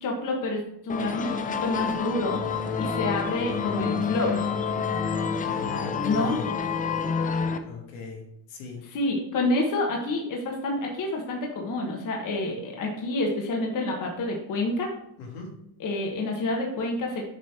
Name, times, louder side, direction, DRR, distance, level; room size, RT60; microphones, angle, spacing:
voice 1, 0.0-2.4 2.8-4.4 6.0-6.4 8.8-14.9 15.8-17.2, left 2 dB, 40° left, 0 dB, 1.4 m, -28 dB
sound 1, 0.9-7.6, left 6 dB, 20° left, 0.3 m, -28 dB
voice 2, 5.4-6.5 7.7-8.2 8.5-8.8 15.2-15.6, left 4 dB, 70° left, 0 dB, 1.7 m, -39 dB
7.4 x 3.2 x 4.2 m, 0.75 s
cardioid pair, 115°, 47 cm